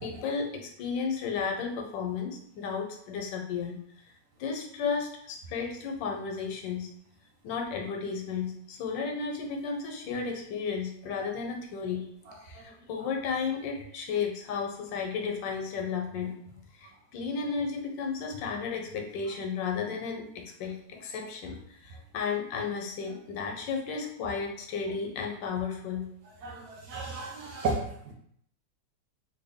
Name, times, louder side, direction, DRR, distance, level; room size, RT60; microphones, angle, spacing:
voice 1, 0.0-3.8 4.4-6.9 7.4-12.1 12.4-16.4 16.8-26.1, left 5 dB, 85° left, 2 dB, 1.3 m, -33 dB
voice 2, 26.4-27.8, right 3 dB, 70° right, -1 dB, 1.0 m, -33 dB
3.3 x 2.1 x 3.5 m, 0.68 s
omnidirectional pair, 1.9 m